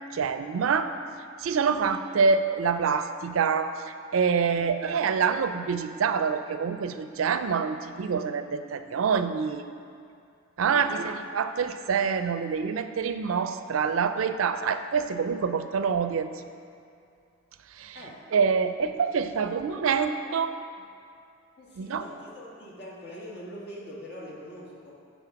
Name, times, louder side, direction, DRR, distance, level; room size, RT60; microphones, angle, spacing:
voice 1, 0.1-1.0 1.4-9.7 10.6-16.3 17.7-18.0 18.3-20.5 21.8-22.0, right 6 dB, 90° right, 10 dB, 0.4 m, -26 dB
voice 2, 10.6-11.1 17.9-18.2 18.6-18.7 19.8-20.1 21.6-24.9, equal, 55° left, -4 dB, 1.6 m, -43 dB
9.1 x 4.2 x 5.9 m, 2.4 s
head